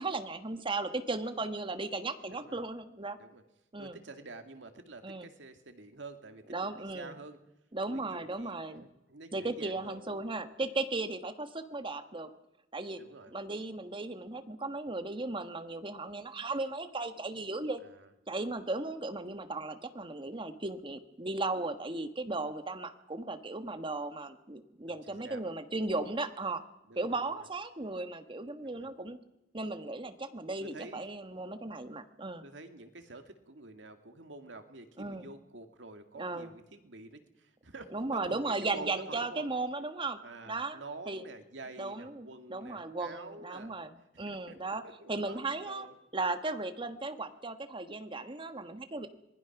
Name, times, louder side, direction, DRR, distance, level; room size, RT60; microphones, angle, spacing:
voice 1, 0.0-3.2 3.7-4.0 5.0-5.3 6.5-7.1 7.7-8.9 9.3-12.3 12.7-13.0 13.3-17.8 18.3-26.6 26.9-29.2 29.5-32.4 35.0-35.3 36.2-36.5 37.9-40.2 40.5-40.8 41.1-41.2 41.8-43.9 44.2-44.8 45.1-45.9 46.1-49.1, right 2 dB, 30° right, 8 dB, 1.4 m, -36 dB
voice 2, 2.3-2.6 3.1-3.4 3.8-7.4 7.9-10.0 13.0-13.3 17.8-18.1 24.9-25.4 26.9-27.5 28.6-28.9 30.6-31.2 32.4-39.5 40.2-43.7 44.1-46.0, right 3 dB, 80° right, 6 dB, 2.2 m, -49 dB
26.0 x 20.0 x 6.0 m, 0.90 s
head